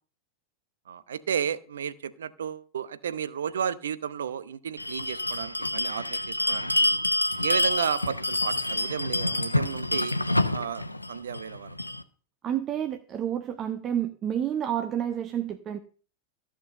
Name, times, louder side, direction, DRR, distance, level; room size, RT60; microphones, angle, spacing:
voice 1, 0.9-7.0 7.4-10.2 10.5-11.7, right 8 dB, 65° right, 16 dB, 0.8 m, -33 dB
Bell, 4.8-12.0, left 1 dB, 85° left, 0.8 m, -27 dB
voice 2, 12.4-15.8, right 10 dB, 30° right, 8 dB, 0.9 m, -29 dB
14.5 x 6.2 x 6.6 m, 0.41 s
figure-of-eight pair, 90°, 0 cm